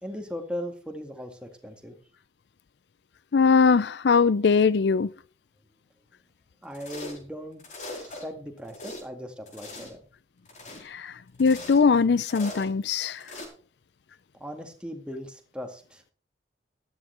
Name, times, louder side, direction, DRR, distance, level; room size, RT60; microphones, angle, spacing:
voice 1, 0.0-2.0 6.6-7.6 7.9-10.0 14.4-16.0, equal, 5° right, 2.0 m, -38 dB
voice 2, 3.3-5.1 10.8-11.1 11.4-13.2, left 5 dB, 70° left, 0.5 m, -21 dB
sound 1, 6.7-7.3 7.6-8.2 8.6-9.0 9.5-10.0 10.5-10.9 11.3-11.9 12.2-12.7 13.2-13.5, left 2 dB, 40° left, 4.2 m, -40 dB
13.0 x 12.5 x 3.4 m
head